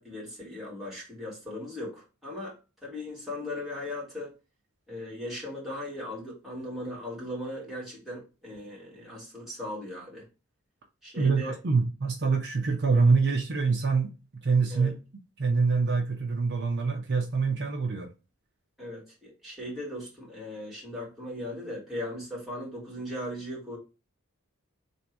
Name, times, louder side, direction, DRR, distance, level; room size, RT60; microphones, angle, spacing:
voice 1, 0.0-2.5 2.8-4.3 4.9-10.2 11.0-11.6 14.7-14.9 18.8-23.8, left 1 dB, ahead, 2.2 m, -38 dB
voice 2, 11.2-14.1 14.4-14.9 15.4-18.1, right 4 dB, 50° right, 0.7 m, -25 dB
3.5 x 2.7 x 4.5 m
head